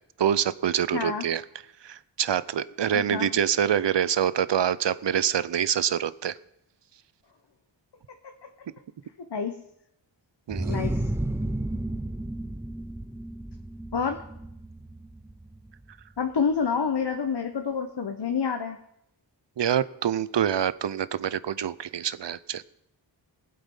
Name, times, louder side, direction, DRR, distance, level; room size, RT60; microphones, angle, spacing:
voice 1, 0.2-1.4 1.8-6.3 10.5-10.8 19.6-22.6, right 9 dB, 65° right, 18 dB, 0.6 m, -26 dB
voice 2, 0.9-1.3 2.9-3.3 9.3-9.5 10.7-11.0 13.9-14.2 16.2-18.8, left 6 dB, 60° left, 5 dB, 1.0 m, -28 dB
sound 1, 10.5-16.0, right 1 dB, 5° right, 0.6 m, -33 dB
19.5 x 7.9 x 5.5 m, 0.79 s
wide cardioid pair, 65°, 47 cm